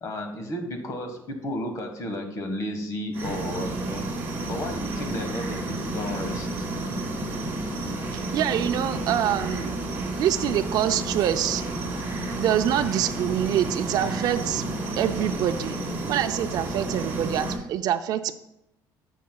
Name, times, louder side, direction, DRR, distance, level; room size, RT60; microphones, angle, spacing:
voice 1, 0.0-4.0 4.5-6.6, left 1 dB, 40° left, 6 dB, 1.4 m, -33 dB
sound 1, 3.1-17.6, right 2 dB, 25° right, 2.1 m, -31 dB
voice 2, 8.1-9.7 10.2-11.6 12.4-14.6 15.0-15.7 16.1-18.4, right 10 dB, 50° right, 8 dB, 0.4 m, -25 dB
11.5 x 7.3 x 2.3 m, 0.85 s
cardioid pair, 150°, 8 cm